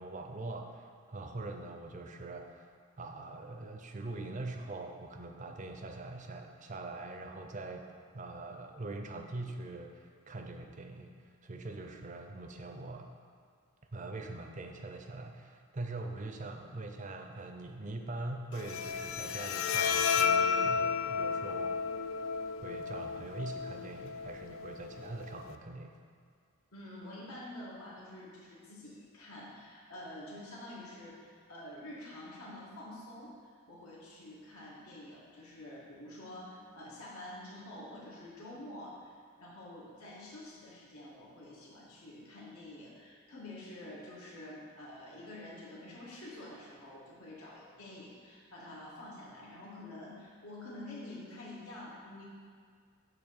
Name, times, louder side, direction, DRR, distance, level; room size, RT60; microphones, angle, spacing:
voice 1, 0.0-7.8 8.1-11.2 11.4-13.1 13.9-21.7 22.6-25.9, right 2 dB, 35° right, 4 dB, 0.5 m, -43 dB
Bowed string instrument, 18.5-25.5, left 6 dB, 65° left, 0.3 m, -33 dB
voice 2, 26.7-39.1 39.4-52.2, left 1 dB, 85° left, -6 dB, 1.9 m, -48 dB
8.8 x 3.1 x 6.4 m, 2.2 s
head